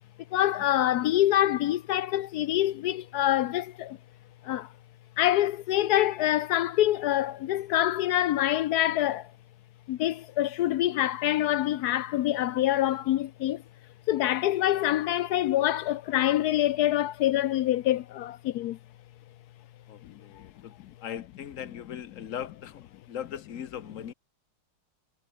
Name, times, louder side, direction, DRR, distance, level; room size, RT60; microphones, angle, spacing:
voice 1, 0.3-4.0 4.4-4.7 5.2-9.3 9.9-13.6 14.1-18.8 20.0-20.1, left 13 dB, 75° left, 0.9 m, -25 dB
voice 2, 19.9-20.7 21.0-24.1, left 9 dB, 45° left, 1.2 m, -39 dB
omnidirectional pair, 2.3 m